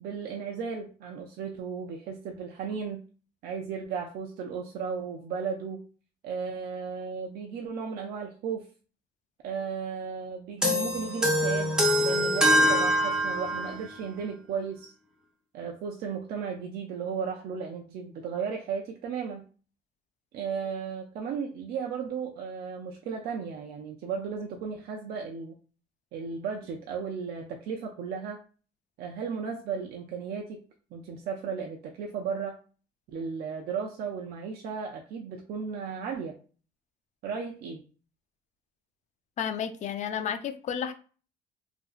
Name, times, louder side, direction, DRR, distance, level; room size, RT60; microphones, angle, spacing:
voice 1, 0.0-3.0 3.4-5.8 6.2-8.7 9.4-11.8 12.0-14.9 15.5-19.4 20.3-25.6 26.1-28.4 29.0-30.6 30.9-32.5 33.1-36.4 37.2-37.8, right 6 dB, 65° right, 2 dB, 0.4 m, -35 dB
sound 1, 10.6-13.8, equal, 5° right, 0.6 m, -24 dB
voice 2, 39.4-40.9, left 8 dB, 45° left, 10 dB, 0.4 m, -32 dB
2.8 x 2.5 x 2.4 m, 0.38 s
cardioid pair, 110°, 17 cm